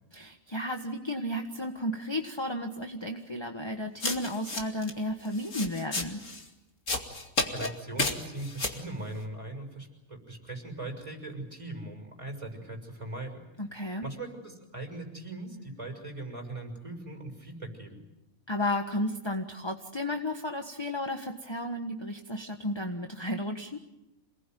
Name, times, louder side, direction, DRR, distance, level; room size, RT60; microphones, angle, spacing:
voice 1, 0.1-6.2 13.6-14.1 18.5-23.8, left 1 dB, 20° left, 4 dB, 1.5 m, -33 dB
sound 1, 4.0-4.9 5.3-6.4 6.9-7.7 8.0-8.8, left 3 dB, 65° left, 2.9 m, -31 dB
voice 2, 7.5-13.4 14.0-18.0, right 2 dB, 20° right, 2 dB, 6.5 m, -40 dB
28.0 x 20.0 x 9.4 m, 0.92 s
omnidirectional pair, 1.4 m